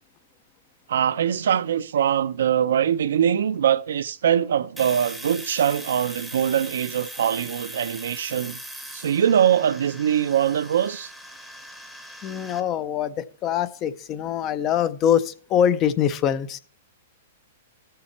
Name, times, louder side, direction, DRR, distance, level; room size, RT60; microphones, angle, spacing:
voice 1, 0.9-8.6 8.9-11.1, right 9 dB, 75° right, 0.6 m, -22 dB
Domestic sounds home sounds, 4.8-12.6, right 1 dB, ahead, 0.8 m, -40 dB
voice 2, 12.2-16.6, left 9 dB, 20° left, 0.4 m, -23 dB
14.5 x 6.7 x 4.3 m
hypercardioid pair, 170°, 0 cm